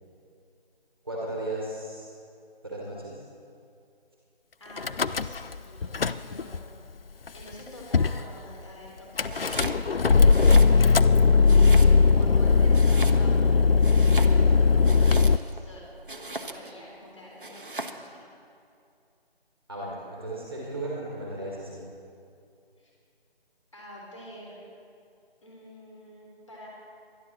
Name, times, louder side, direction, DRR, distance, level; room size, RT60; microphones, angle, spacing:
voice 1, 1.0-2.1 2.6-3.2 19.7-21.8, right 1 dB, 25° right, -4 dB, 1.8 m, -35 dB
voice 2, 4.6-5.9 6.2-6.6 7.3-11.0 11.3-15.8 16.3-18.3 22.8-22.9 23.7-24.6 25.4-26.7, equal, 30° left, -3 dB, 3.4 m, -47 dB
Car / Engine starting / Idling, 4.8-5.6 5.8-6.6 7.3-7.4 7.5-7.6 7.9-8.2 9.2-15.4, left 4 dB, 65° left, 0.5 m, -19 dB
Domestic sounds home sounds, 9.3-9.8 10.2-11.1 11.5-12.2 12.7-13.5 13.8-15.6 16.1-16.8 17.4-18.1, right 2 dB, 55° right, 1.1 m, -37 dB
24.0 x 11.0 x 4.2 m, 2.5 s
figure-of-eight pair, 165°, 31 cm